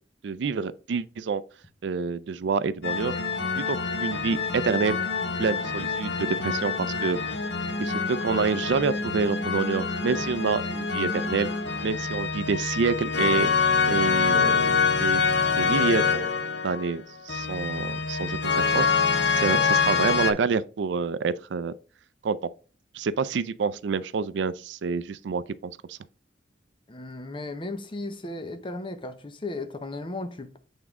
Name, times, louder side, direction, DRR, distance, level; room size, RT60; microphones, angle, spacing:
voice 1, 0.2-1.4 1.8-3.1 3.5-5.0 5.4-7.2 7.8-11.5 11.8-13.5 13.9-15.2 15.6-16.3 16.6-18.9 19.3-21.7 22.2-22.4 22.9-26.0, right 5 dB, 70° right, 0.4 m, -27 dB
sound 1, 2.8-20.3, left 5 dB, 70° left, 1.0 m, -26 dB
voice 2, 26.9-30.6, left 2 dB, 25° left, 0.7 m, -35 dB
8.0 x 3.6 x 3.6 m
head